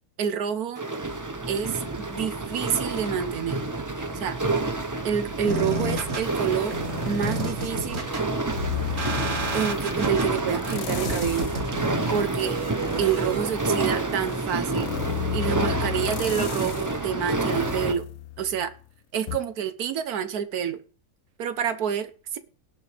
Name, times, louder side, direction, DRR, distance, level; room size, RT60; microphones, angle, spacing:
voice 1, 0.2-0.8 1.5-3.6 4.1-4.4 5.0-6.8 7.0-8.0 9.5-11.5 12.1-12.6 13.0-14.9 15.3-18.1 18.4-18.7 19.1-20.8 21.4-22.4, right 8 dB, 80° right, 1.4 m, -28 dB
sound 1, 0.8-17.9, right 2 dB, 20° right, 0.6 m, -29 dB
sound 2, 5.5-13.5, right 2 dB, 60° right, 2.2 m, -32 dB
sound 3, 8.6-10.0 10.6-11.7 12.1-18.8 19.3-19.4, left 12 dB, 75° left, 1.1 m, -34 dB
18.0 x 7.0 x 3.4 m
omnidirectional pair, 1.6 m